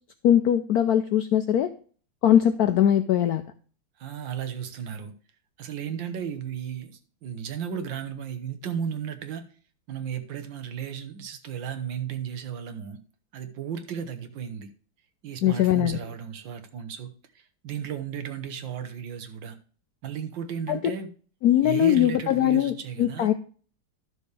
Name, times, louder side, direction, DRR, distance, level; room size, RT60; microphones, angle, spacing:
voice 1, 0.2-1.7 2.2-3.4 15.4-16.0 20.7-20.8 21.4-23.3, left 11 dB, 80° left, 9 dB, 0.8 m, -21 dB
voice 2, 4.0-5.1 5.6-9.4 9.9-13.0 13.3-14.7 15.2-19.6 20.0-21.1 21.6-23.3, right 8 dB, 70° right, 9 dB, 1.7 m, -34 dB
12.5 x 6.3 x 3.3 m, 0.41 s
omnidirectional pair, 2.2 m